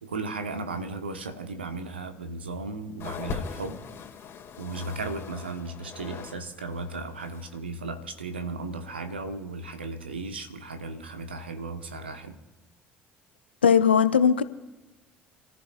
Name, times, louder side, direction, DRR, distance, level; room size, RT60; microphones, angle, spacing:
voice 1, 0.0-3.8 4.6-12.4, right 3 dB, 85° right, 1.3 m, -35 dB
sound 1, 3.0-6.4 6.7-7.6 8.3-8.4, left 6 dB, 45° left, 2.3 m, -40 dB
voice 2, 13.6-14.4, left 7 dB, 85° left, 0.7 m, -19 dB
29.5 x 14.0 x 2.5 m
figure-of-eight pair, 55°, 6 cm